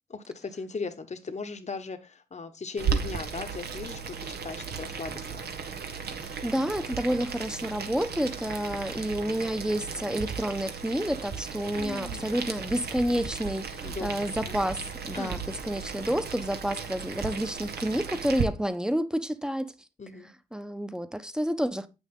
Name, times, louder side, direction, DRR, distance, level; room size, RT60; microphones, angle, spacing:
voice 1, 0.1-5.4 11.7-12.3 13.8-14.1 14.5-14.6 15.1-15.5 20.0-20.3, left 4 dB, 40° left, 1.3 m, -38 dB
Boiling, 2.8-18.4, right 6 dB, 65° right, 1.3 m, -35 dB
voice 2, 6.2-19.7 20.5-21.9, equal, 5° right, 1.1 m, -29 dB
8.2 x 6.3 x 3.8 m
supercardioid pair, 40°, 17 cm